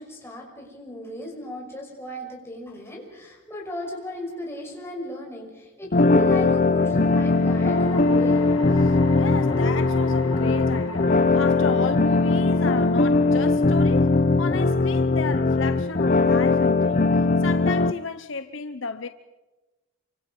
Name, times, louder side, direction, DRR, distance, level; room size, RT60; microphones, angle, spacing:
voice 1, 0.0-8.4, left 1 dB, 10° left, 6.0 m, -35 dB
sound 1, 3.7-4.4 6.8-18.1, left 3 dB, 85° left, 1.5 m, -41 dB
sound 2, 5.9-17.9, left 3 dB, 40° left, 0.7 m, -20 dB
voice 2, 8.8-14.1 14.4-19.1, left 4 dB, 65° left, 0.9 m, -33 dB
27.5 x 25.0 x 5.4 m
head